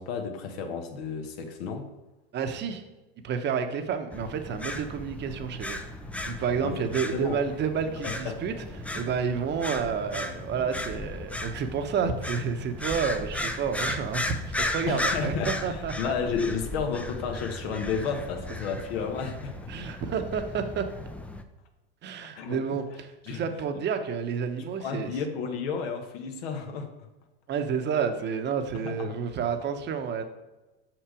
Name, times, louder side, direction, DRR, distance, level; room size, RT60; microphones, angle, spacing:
voice 1, 0.0-1.9 6.6-6.8 7.1-7.4 8.0-8.4 14.9-19.5 22.3-22.6 23.2-23.4 24.8-26.9 28.8-29.1, left 6 dB, 70° left, 4 dB, 1.2 m, -32 dB
voice 2, 2.3-2.8 3.2-5.8 6.2-16.1 19.7-20.9 22.0-25.1 27.5-30.2, right 6 dB, 35° right, 7 dB, 1.0 m, -30 dB
sound 1, 4.1-21.4, left 1 dB, 5° left, 0.5 m, -36 dB
6.5 x 6.0 x 4.9 m, 1.1 s
hypercardioid pair, 110°, 31 cm